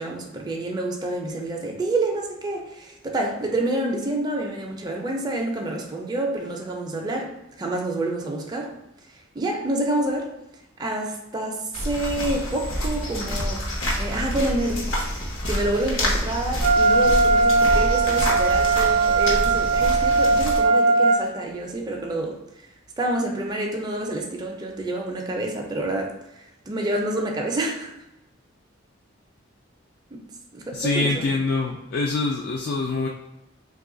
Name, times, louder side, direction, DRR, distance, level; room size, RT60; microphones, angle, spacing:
voice 1, 0.0-8.7 9.3-10.3 10.8-13.6 14.0-14.8 15.5-22.4 23.0-26.1 26.7-27.9 30.1-30.2 30.5-31.3, right 2 dB, 20° right, 0 dB, 0.4 m, -28 dB
sound 1, 11.7-20.6, equal, 80° left, 0.9 m, -27 dB
Wind instrument woodwind instrument, 16.6-21.2, right 3 dB, 85° right, 0.3 m, -19 dB
voice 2, 30.7-33.1, left 3 dB, 50° left, 0 dB, 0.3 m, -24 dB
3.1 x 2.3 x 3.7 m, 0.92 s
head